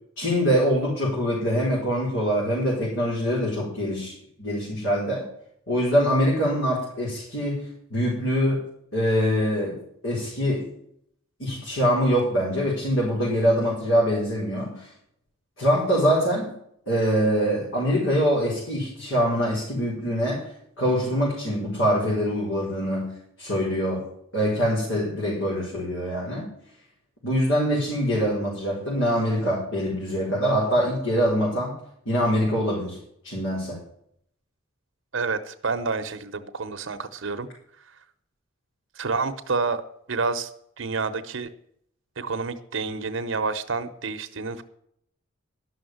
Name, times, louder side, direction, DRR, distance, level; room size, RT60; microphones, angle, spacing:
voice 1, 0.2-5.2 5.7-8.7 8.9-10.7 11.4-14.9 15.6-16.5 16.9-20.5 20.8-23.1 23.4-24.1 24.3-26.5 27.2-31.7 32.0-33.0 33.2-33.8, equal, 75° left, -6 dB, 4.8 m, -24 dB
voice 2, 35.1-37.5 39.0-39.8 40.1-40.5 40.8-41.5 42.2-44.6, right 4 dB, 70° right, 9 dB, 0.9 m, -28 dB
12.0 x 6.4 x 7.8 m, 0.70 s
head